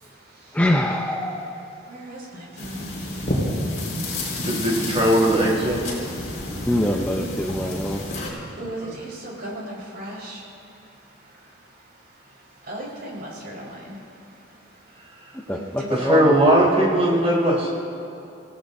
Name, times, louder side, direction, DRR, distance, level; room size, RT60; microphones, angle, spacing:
voice 1, 0.5-1.6 6.6-8.0 15.5-16.3, left 1 dB, 5° left, 0 dB, 0.7 m, -24 dB
voice 2, 1.9-2.9 8.6-10.4 12.7-14.0 15.5-15.9, right 1 dB, 50° right, -4 dB, 4.7 m, -36 dB
sound 1, 2.6-8.3, left 1 dB, 40° left, 4.7 m, -30 dB
voice 3, 4.4-5.8 8.8-9.0 16.0-17.7, right 1 dB, 30° right, -4 dB, 3.9 m, -19 dB
29.0 x 17.0 x 2.7 m, 2.8 s
head